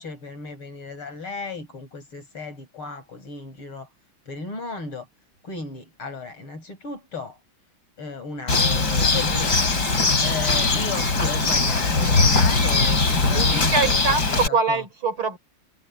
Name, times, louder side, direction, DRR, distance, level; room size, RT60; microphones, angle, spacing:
voice 1, 0.0-3.9 4.3-5.1 5.4-7.4 8.0-9.6 10.2-14.8, left 4 dB, 90° left, 7.0 m, -35 dB
Bird, 8.5-14.5, left 3 dB, 50° left, 4.3 m, -20 dB
voice 2, 13.3-15.4, right 4 dB, 75° right, 5.2 m, -24 dB
omnidirectional pair, 2.3 m